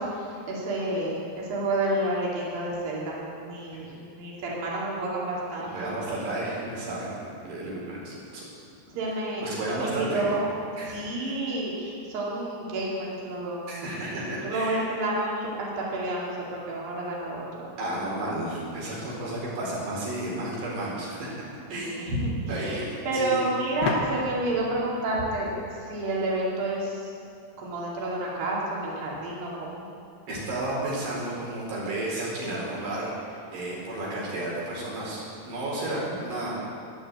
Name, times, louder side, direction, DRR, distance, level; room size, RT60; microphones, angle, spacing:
voice 1, 0.0-5.7 8.9-10.4 10.9-13.7 14.1-17.7 21.7-27.1 27.6-29.9, right 2 dB, 60° right, -5 dB, 4.3 m, -30 dB
voice 2, 5.6-8.4 9.4-10.3 10.8-11.5 13.7-14.9 17.8-21.3 21.7-21.9 22.5-23.4 30.3-36.7, right 1 dB, 85° right, -5 dB, 6.3 m, -32 dB
sound 1, 23.8-26.5, left 5 dB, 85° left, 3.3 m, -34 dB
13.5 x 11.0 x 8.2 m, 2.4 s
omnidirectional pair, 4.6 m